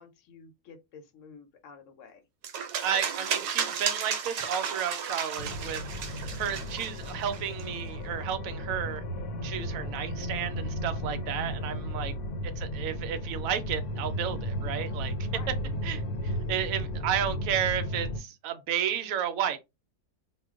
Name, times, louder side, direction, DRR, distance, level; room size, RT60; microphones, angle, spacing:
voice 1, 0.0-2.2 12.0-12.4 15.3-15.5, left 5 dB, 65° left, 0.9 m, -51 dB
sound 1, 2.4-7.6, right 7 dB, 90° right, 1.1 m, -33 dB
voice 2, 2.8-9.0 9.4-12.1 12.6-15.1 15.8-19.6, right 9 dB, 70° right, 0.9 m, -32 dB
sound 2, 5.4-18.2, equal, 80° left, 1.1 m, -34 dB
2.4 x 2.3 x 3.5 m
omnidirectional pair, 1.6 m